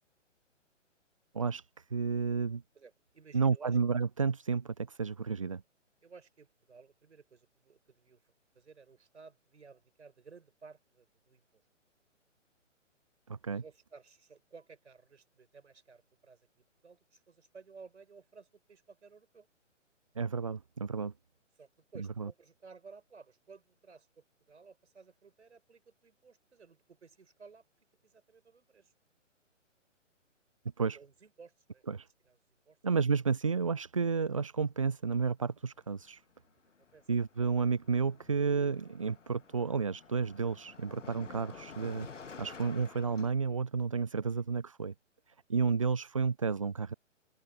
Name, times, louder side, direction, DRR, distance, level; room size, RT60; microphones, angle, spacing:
voice 1, 1.3-2.6 3.3-5.6 13.3-13.6 20.2-21.1 22.2-22.3 30.8-31.0 31.9-32.1 32.8-36.2 37.1-44.9 45.5-46.9, right 5 dB, 25° right, 0.4 m, -31 dB
voice 2, 2.7-3.8 6.0-11.6 13.5-19.5 21.6-27.6 28.0-28.9 30.9-31.8 32.3-32.4 32.7-32.8 36.8-37.5 41.2-41.3, right 5 dB, 65° right, 5.6 m, -56 dB
Car passing by, 35.8-36.1 36.3-43.3, left 5 dB, 70° left, 1.3 m, -51 dB
open air
figure-of-eight pair, 135°, 38 cm